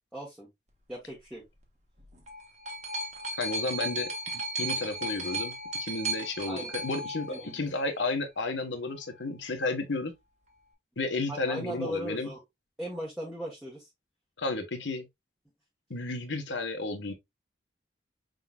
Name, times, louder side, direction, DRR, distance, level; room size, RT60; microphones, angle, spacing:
voice 1, 0.1-0.5 0.9-1.4 6.5-6.7 7.0-7.5 11.3-12.4 12.8-13.9, equal, 5° right, 1.3 m, -38 dB
sound 1, 2.0-8.0 8.9-9.0, right 1 dB, 40° right, 1.2 m, -35 dB
voice 2, 3.4-5.5 5.8-7.3 7.5-10.1 11.0-12.3 14.4-15.0 15.9-17.1, left 3 dB, 85° left, 1.2 m, -32 dB
5.4 x 3.8 x 2.3 m
head